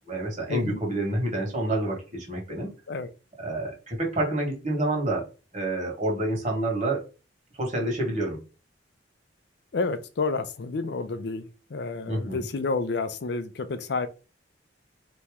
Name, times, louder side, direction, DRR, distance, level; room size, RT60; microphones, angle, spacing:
voice 1, 0.1-2.7 3.4-5.3 5.5-7.0 7.6-8.4 12.1-12.4, right 1 dB, 40° right, 1.6 m, -28 dB
voice 2, 9.7-14.1, left 3 dB, 60° left, 0.5 m, -30 dB
4.2 x 3.0 x 3.5 m
head